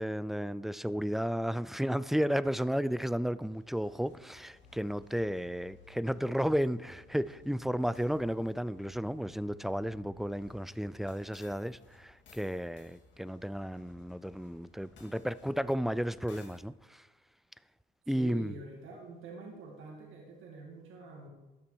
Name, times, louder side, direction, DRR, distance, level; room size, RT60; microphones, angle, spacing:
voice 1, 0.0-17.1 18.1-18.6, equal, ahead, 0.3 m, -33 dB
sound 1, 3.2-16.6, left 4 dB, 70° left, 2.0 m, -61 dB
sound 2, 4.6-10.6, equal, 30° left, 1.9 m, -59 dB
voice 2, 18.1-21.3, right 3 dB, 90° right, 1.9 m, -46 dB
12.5 x 7.3 x 4.6 m
cardioid pair, 90°, 20 cm